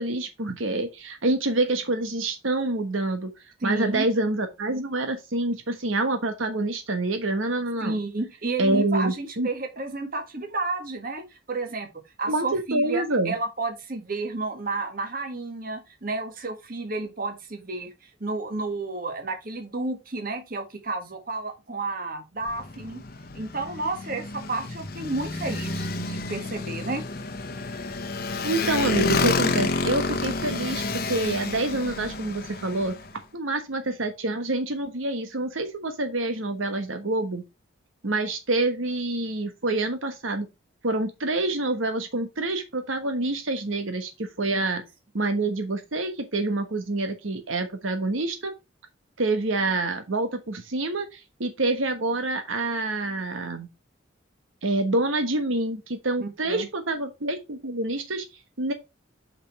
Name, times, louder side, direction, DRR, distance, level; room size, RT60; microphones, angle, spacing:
voice 1, 0.0-3.3 3.6-8.0 8.6-9.5 12.3-13.3 28.4-32.9 33.3-37.4 38.0-40.5 40.8-44.8 45.1-48.5 49.2-53.7 54.6-58.2 58.6-58.7, right 2 dB, 90° right, 1.3 m, -27 dB
voice 2, 3.6-4.1 7.8-11.9 12.2-23.0 23.3-27.0 44.5-44.6 56.2-56.6, right 3 dB, 45° right, 1.5 m, -31 dB
Motorcycle, 22.4-33.1, left 3 dB, 50° left, 0.9 m, -30 dB
5.8 x 5.4 x 4.2 m
head